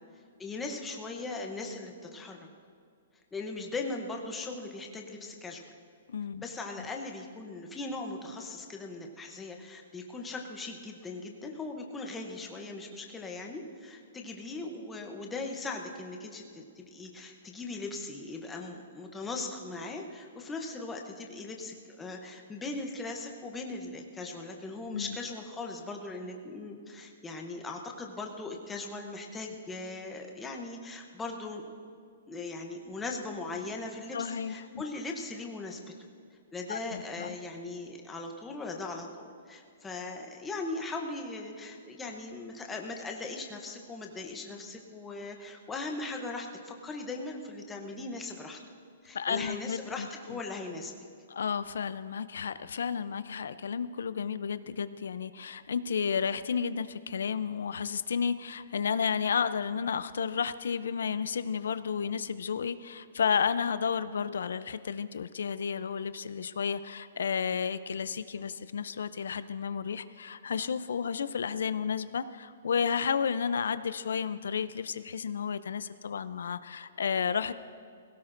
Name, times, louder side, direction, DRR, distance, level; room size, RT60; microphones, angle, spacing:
voice 1, 0.4-2.5 3.3-5.6 6.4-31.6 32.3-35.8 36.5-48.6 49.0-50.9, left 3 dB, 5° left, 2 dB, 0.7 m, -39 dB
voice 2, 6.1-6.4 6.8-6.9 24.9-25.2 34.1-34.8 36.7-37.3 49.1-50.4 51.3-77.5, left 6 dB, 80° left, 14 dB, 0.4 m, -32 dB
20.5 x 17.0 x 2.6 m, 2.3 s
hypercardioid pair, 180°, 0 cm